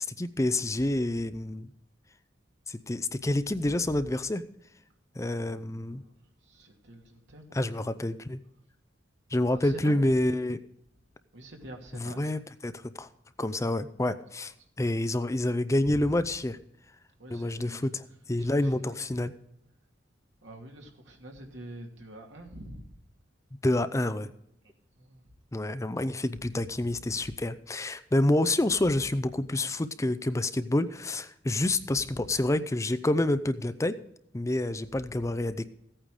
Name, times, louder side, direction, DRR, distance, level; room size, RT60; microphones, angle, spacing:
voice 1, 0.1-1.7 2.7-4.4 5.2-6.0 7.5-8.4 9.3-10.6 12.0-13.1 13.4-16.6 17.3-17.9 18.3-19.3 23.6-24.3 25.5-34.0 34.3-35.7, left 1 dB, 15° left, 0.5 m, -28 dB
voice 2, 3.3-4.1 5.7-8.0 9.3-10.2 11.3-12.3 14.2-14.7 15.8-16.3 17.2-19.3 20.4-23.0 24.6-25.3 26.3-27.4 28.7-29.2 31.6-32.4, right 1 dB, 80° right, 2.5 m, -47 dB
15.5 x 9.0 x 4.9 m
head